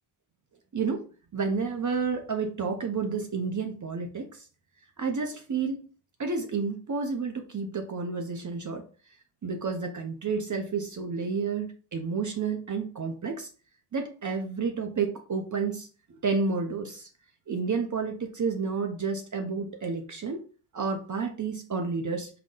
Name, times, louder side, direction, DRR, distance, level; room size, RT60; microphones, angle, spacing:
voice 1, 0.7-1.0 1.3-4.4 5.0-5.8 6.2-8.8 9.4-13.5 13.9-15.9 16.2-17.1 17.5-20.4 20.7-22.3, right 5 dB, 40° right, 4 dB, 0.7 m, -30 dB
3.9 x 2.2 x 3.7 m, 0.37 s
cardioid pair, 70°, 48 cm